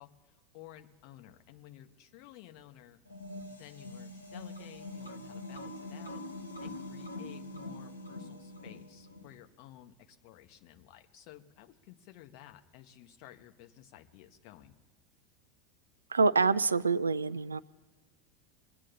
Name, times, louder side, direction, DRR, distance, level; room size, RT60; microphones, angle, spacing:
voice 1, 0.0-3.0 3.5-14.8, left 12 dB, 50° left, 5 dB, 1.3 m, -54 dB
sound 1, 3.1-9.4, left 2 dB, 80° left, 1.2 m, -44 dB
voice 2, 16.1-17.6, right 4 dB, 80° right, 17 dB, 0.4 m, -26 dB
22.5 x 8.9 x 4.2 m, 1.4 s
figure-of-eight pair, 80°, 0 cm